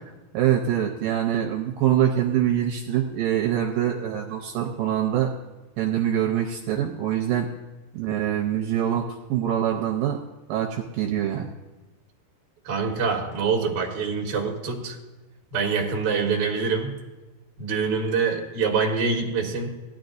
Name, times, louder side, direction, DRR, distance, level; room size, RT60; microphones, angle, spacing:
voice 1, 0.3-5.3 5.8-7.5 7.9-9.0 9.3-10.2 10.5-11.5, right 10 dB, 80° right, 1 dB, 2.2 m, -24 dB
voice 2, 12.6-15.0 15.5-17.0 17.6-19.7, right 5 dB, 50° right, -1 dB, 1.3 m, -25 dB
18.0 x 12.0 x 2.6 m, 1.1 s
omnidirectional pair, 4.7 m